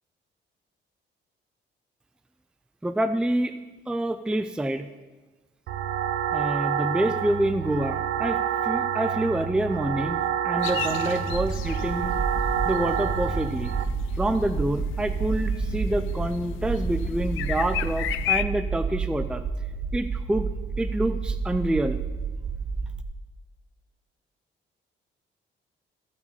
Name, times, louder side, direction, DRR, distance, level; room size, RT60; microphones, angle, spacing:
voice 1, 2.8-3.5 3.9-4.9 6.3-12.1 12.6-13.7 14.2-19.4 19.9-20.5 20.8-22.0, right 1 dB, 5° right, 10 dB, 0.4 m, -27 dB
sound 1, 5.7-13.8, right 9 dB, 70° right, 0.7 m, -28 dB
sound 2, 10.6-18.4, left 13 dB, 85° left, 0.4 m, -34 dB
sound 3, 11.3-23.0, right 5 dB, 35° right, 0.8 m, -30 dB
14.5 x 4.8 x 5.6 m, 1.3 s
cardioid pair, 90°, 20 cm